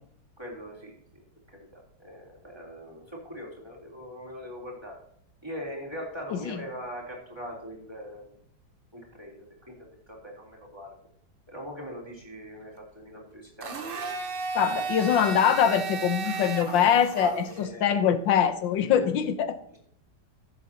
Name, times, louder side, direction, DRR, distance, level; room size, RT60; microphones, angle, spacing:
voice 1, 0.4-0.9 1.5-5.0 5.4-8.4 8.9-11.0 11.5-14.1 16.2-16.9 17.2-18.1, equal, 15° right, -2 dB, 3.4 m, -41 dB
voice 2, 6.3-6.6 14.5-19.6, left 8 dB, 90° left, 10 dB, 1.6 m, -23 dB
Domestic sounds home sounds, 13.6-17.6, right 5 dB, 40° right, 0.8 m, -34 dB
15.5 x 7.7 x 2.8 m, 0.68 s
omnidirectional pair, 2.0 m